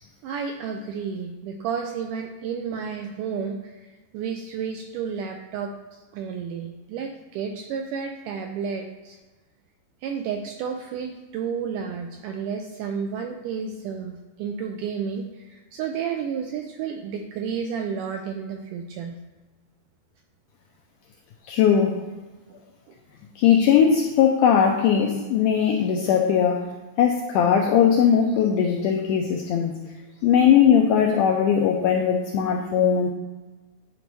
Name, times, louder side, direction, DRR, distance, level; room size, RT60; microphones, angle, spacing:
voice 1, 0.2-3.9 4.1-9.2 10.0-19.2 22.9-23.0, right 6 dB, 85° right, 3 dB, 1.9 m, -31 dB
voice 2, 21.5-22.0 23.4-26.7 27.0-29.7 30.2-33.1, left 8 dB, 85° left, 2 dB, 1.8 m, -19 dB
10.0 x 4.0 x 4.6 m, 1.2 s
omnidirectional pair, 4.2 m